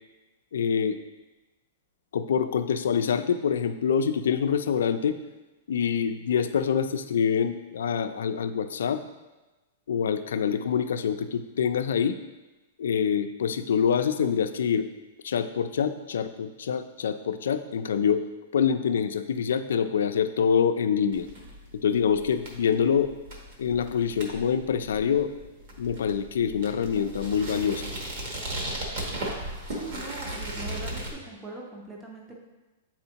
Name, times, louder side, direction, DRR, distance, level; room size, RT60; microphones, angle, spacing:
voice 1, 0.5-1.0 2.1-5.2 5.7-9.0 9.9-12.2 12.8-14.9 15.2-18.2 18.5-21.3 21.8-23.1 23.6-25.3 25.8-27.9, left 7 dB, 85° left, 9 dB, 0.4 m, -25 dB
sound 1, 21.1-31.1, right 1 dB, 40° right, 1.0 m, -37 dB
voice 2, 29.7-32.4, right 3 dB, 10° right, -2 dB, 0.5 m, -41 dB
7.9 x 4.3 x 2.9 m, 1.1 s
supercardioid pair, 180°, 0 cm